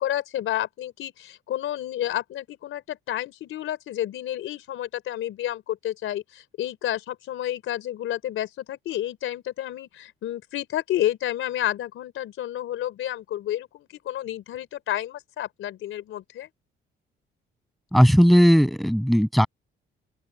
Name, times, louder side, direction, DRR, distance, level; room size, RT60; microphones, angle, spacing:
voice 1, 0.0-16.5, left 12 dB, 75° left, 4.0 m, -30 dB
voice 2, 17.9-19.5, equal, ahead, 7.7 m, -17 dB
open air
cardioid pair, 115°, 21 cm